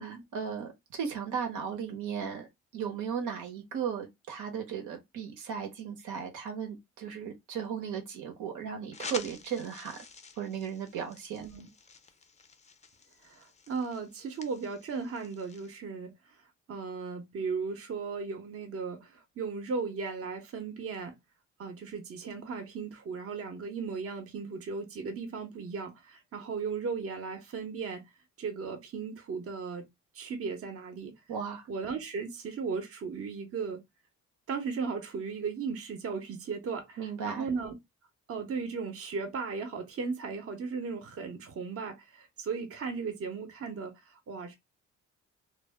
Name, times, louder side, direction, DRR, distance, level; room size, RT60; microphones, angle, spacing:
voice 1, 0.0-2.5 2.7-10.0 10.4-11.4 31.3-31.7 37.0-37.5, right 7 dB, 80° right, 0.9 m, -36 dB
sound 1, 8.9-15.7, left 5 dB, 25° left, 0.5 m, -48 dB
voice 2, 11.4-11.7 13.2-16.1 16.7-21.2 21.6-28.0 28.4-29.9 30.1-31.1 31.7-33.8 34.5-37.8 38.3-44.6, right 5 dB, 50° right, 0.8 m, -36 dB
2.1 x 2.1 x 3.5 m
cardioid pair, 90°, 30 cm